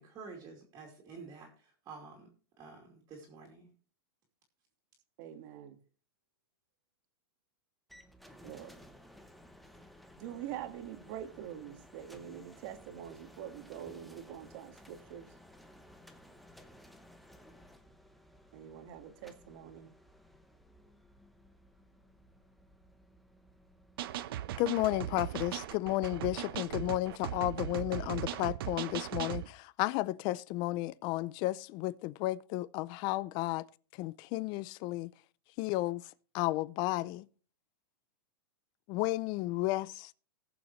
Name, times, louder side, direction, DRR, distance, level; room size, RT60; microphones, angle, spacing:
voice 1, 0.0-2.3 2.6-3.7, right 4 dB, 25° right, 2.7 m, -50 dB
voice 2, 5.2-5.8 8.4-8.8 10.2-15.3 18.5-19.9, right 10 dB, 50° right, 1.6 m, -45 dB
sound 1, 7.9-25.8, equal, ahead, 0.8 m, -58 dB
sound 2, 24.0-29.5, right 12 dB, 65° right, 0.8 m, -38 dB
voice 3, 24.6-33.6 33.9-35.1 35.6-36.0 36.3-37.3 38.9-40.1, left 17 dB, 35° left, 0.5 m, -33 dB
20.0 x 7.1 x 3.1 m
supercardioid pair, 150°, 13 cm